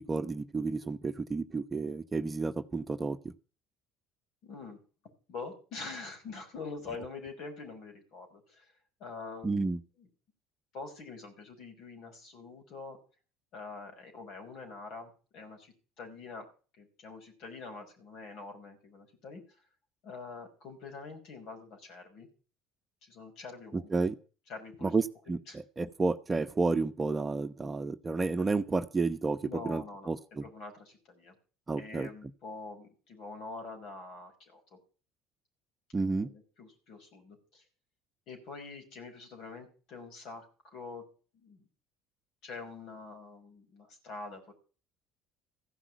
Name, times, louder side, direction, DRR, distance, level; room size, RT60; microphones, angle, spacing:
voice 1, 0.0-3.2 9.4-9.8 23.7-24.1 24.8-30.4 31.7-32.1 35.9-36.3, right 3 dB, 25° right, 9 dB, 1.0 m, -31 dB
voice 2, 4.4-4.8 5.3-8.7 9.0-10.1 10.7-13.0 13.5-16.5 16.8-19.4 20.0-22.3 23.0-23.9 24.5-24.9 25.5-25.6 29.4-31.3 31.8-34.8 36.0-37.6 38.3-41.1 41.4-41.6 42.4-44.5, left 3 dB, 60° left, 4 dB, 5.4 m, -45 dB
15.0 x 6.0 x 9.3 m, 0.38 s
hypercardioid pair, 65°, 0 cm